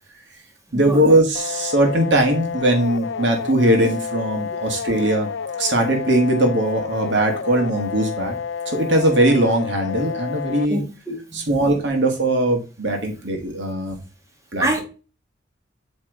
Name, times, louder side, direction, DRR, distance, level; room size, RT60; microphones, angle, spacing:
voice 1, 0.7-5.3 5.6-8.3 8.7-10.8 11.3-14.0 14.5-14.8, right 1 dB, 75° right, 1.6 m, -20 dB
sound 1, 1.3-10.7, left 6 dB, 80° left, 0.4 m, -30 dB
voice 2, 10.7-11.7 14.6-14.8, right 1 dB, 15° right, 1.6 m, -26 dB
7.9 x 3.5 x 3.7 m
head